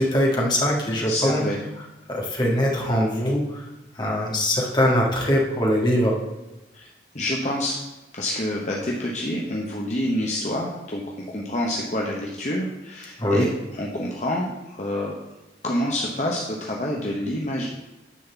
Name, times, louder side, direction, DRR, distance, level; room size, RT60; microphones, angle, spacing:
voice 1, 0.0-1.4 2.1-3.6 3.9-6.1 13.2-13.5, equal, 25° left, -3 dB, 1.7 m, -22 dB
voice 2, 1.1-1.6 6.7-6.9 7.1-7.8 8.1-15.2 15.6-17.7, left 1 dB, 40° left, -2 dB, 1.0 m, -27 dB
10.0 x 4.3 x 6.9 m, 1.0 s
head